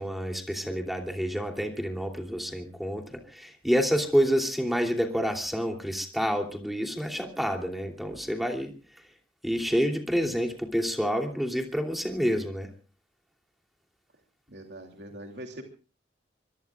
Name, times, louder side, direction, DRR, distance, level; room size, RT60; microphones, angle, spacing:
voice 1, 0.0-8.7 9.4-12.7, equal, ahead, 3 dB, 2.9 m, -28 dB
voice 2, 14.5-15.6, right 1 dB, 80° right, 3 dB, 2.9 m, -42 dB
25.5 x 22.5 x 2.4 m, 0.35 s
head